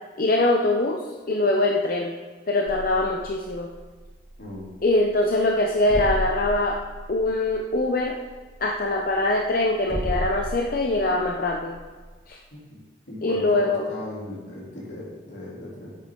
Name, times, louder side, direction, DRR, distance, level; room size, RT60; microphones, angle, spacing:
voice 1, 0.2-2.1 2.5-3.7 4.8-6.8 7.1-8.2 8.6-11.8 12.3-12.4 13.2-13.8, left 2 dB, 50° left, 1 dB, 0.7 m, -23 dB
sound 1, 2.7-12.3, equal, 45° right, 2.9 m, -35 dB
voice 2, 13.1-16.0, left 1 dB, 75° left, -5 dB, 3.3 m, -37 dB
10.0 x 8.3 x 3.9 m, 1.4 s
head